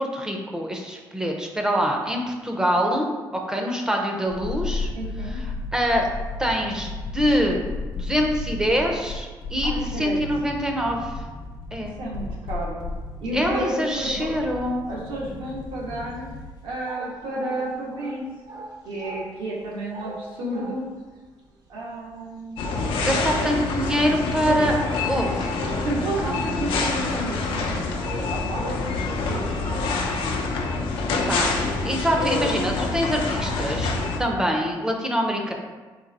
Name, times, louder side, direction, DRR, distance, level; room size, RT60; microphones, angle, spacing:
voice 1, 0.0-4.9 5.3-5.4 5.7-6.1 6.4-7.6 8.0-11.2 11.7-11.9 13.3-14.9 23.0-24.8 25.1-25.5 26.2-26.8 31.3-31.5 31.8-35.5, equal, 10° right, 1 dB, 0.5 m, -25 dB
sound 1, 4.3-16.7 16.9-17.0, left 3 dB, 55° left, 0.7 m, -34 dB
voice 2, 4.9-5.4 9.6-10.2 11.8-12.9 13.2-14.4 14.9-16.3 16.6-18.2 18.8-20.8 21.7-22.7 23.0-23.5 24.4-24.8 25.8-27.9 28.3-28.7 29.3-29.6 30.7-30.9, right 1 dB, 75° right, -4 dB, 1.2 m, -31 dB
sound 2, 15.7-27.3 27.5-29.4 29.7-30.5 30.8-31.2, right 2 dB, 50° right, 0.7 m, -40 dB
sound 3, 22.6-34.2, left 3 dB, 90° left, 0.5 m, -26 dB
4.0 x 2.8 x 4.0 m, 1.3 s
cardioid pair, 150°, 9 cm